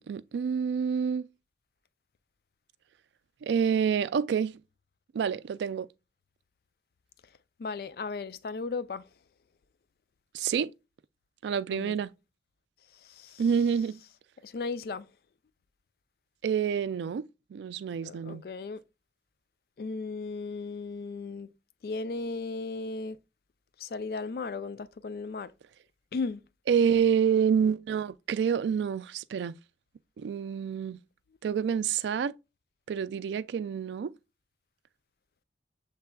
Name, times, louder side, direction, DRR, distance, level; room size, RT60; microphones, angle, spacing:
voice 1, 0.1-1.3 3.4-4.6 5.1-5.9 10.3-10.7 11.4-12.1 13.4-14.0 16.4-18.4 26.7-29.6 30.2-31.0 31.4-32.3 32.9-34.1, right 7 dB, 80° right, 0.3 m, -28 dB
voice 2, 7.6-9.1 11.7-12.0 12.9-13.4 14.4-15.1 18.0-18.8 19.8-21.5 21.8-23.2 23.8-25.5 26.1-26.4, left 4 dB, 55° left, 0.3 m, -36 dB
6.9 x 3.3 x 2.2 m
head